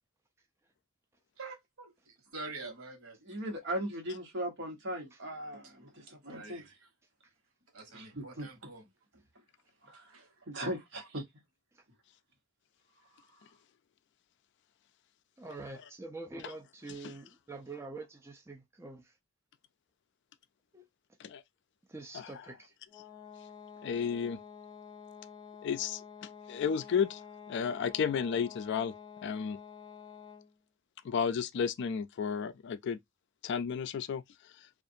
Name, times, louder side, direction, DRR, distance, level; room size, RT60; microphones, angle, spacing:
voice 1, 1.4-3.4 5.6-5.7 6.3-6.9 7.7-9.2 9.9-10.5 11.1-11.2, right 3 dB, 90° right, 1.1 m, -47 dB
voice 2, 3.2-6.6 7.9-8.5 9.8-10.1 10.5-11.2, right 1 dB, 60° right, 1.1 m, -38 dB
voice 3, 15.4-19.0 20.7-20.8 21.9-22.7, right 3 dB, 15° right, 0.4 m, -45 dB
sound 1, 22.9-30.6, left 7 dB, 15° left, 0.9 m, -50 dB
voice 4, 23.8-24.4 25.6-26.0 26.5-27.2 27.5-28.9 29.2-29.6 31.0-33.0 33.4-34.2, left 6 dB, 55° left, 0.3 m, -32 dB
2.5 x 2.4 x 2.6 m
head